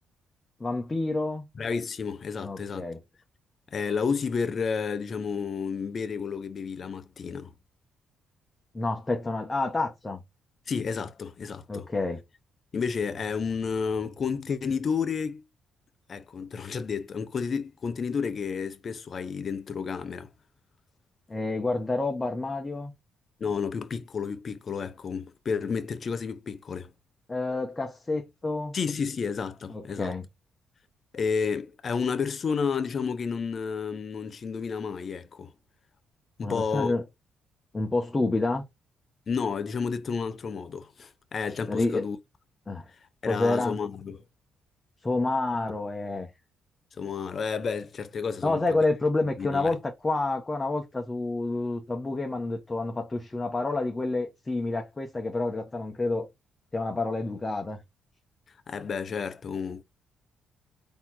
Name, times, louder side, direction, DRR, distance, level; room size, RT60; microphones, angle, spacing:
voice 1, 0.6-1.4 2.4-3.0 8.7-10.2 11.7-12.2 21.3-22.9 27.3-28.8 29.7-30.3 36.4-37.0 37.7-38.6 41.7-42.0 42.7-42.9 43.3-43.8 45.0-46.3 48.4-56.3 56.7-57.8, left 2 dB, 20° left, 0.9 m, -28 dB
voice 2, 1.6-2.9 3.7-7.5 10.7-11.9 12.7-15.4 16.1-20.3 23.4-26.9 28.7-30.1 31.1-35.5 36.4-37.0 39.3-42.2 43.2-44.2 47.0-48.8 49.4-49.8 58.7-59.8, left 5 dB, 45° left, 0.6 m, -31 dB
4.3 x 2.9 x 4.1 m
cardioid pair, 90°, 0 cm